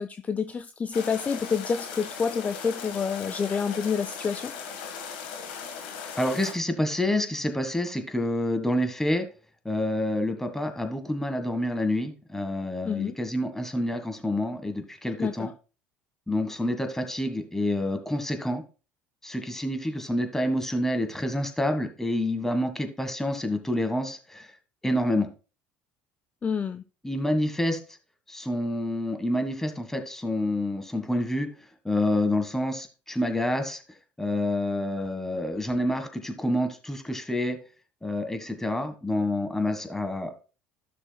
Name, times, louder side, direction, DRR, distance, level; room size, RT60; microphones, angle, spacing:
voice 1, 0.0-4.5 12.9-13.2 15.2-15.5 26.4-26.8, left 6 dB, 30° left, 11 dB, 0.5 m, -28 dB
sound 1, 0.9-6.5, left 6 dB, 80° left, 1.5 m, -38 dB
voice 2, 6.1-9.3 9.6-15.5 16.3-18.6 19.2-24.5 24.8-25.3 27.0-27.8 28.3-31.5 31.8-33.8 34.2-37.6 38.0-40.3, left 1 dB, 5° left, 7 dB, 1.6 m, -28 dB
13.0 x 6.2 x 2.3 m, 0.34 s
hypercardioid pair, 70°, 5 cm